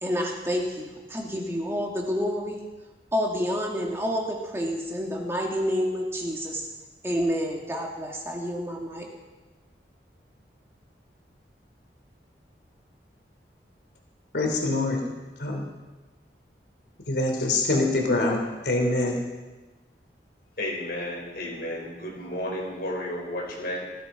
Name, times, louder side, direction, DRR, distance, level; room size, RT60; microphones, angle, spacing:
voice 1, 0.0-2.6 3.1-6.7 7.0-9.1, equal, 15° right, -1 dB, 2.0 m, -29 dB
voice 2, 14.3-15.0 15.4-15.7 17.1-19.2, left 2 dB, 75° left, 1 dB, 2.9 m, -24 dB
voice 3, 20.6-23.8, left 1 dB, 55° left, -2 dB, 5.3 m, -32 dB
18.0 x 15.0 x 5.0 m, 1.2 s
head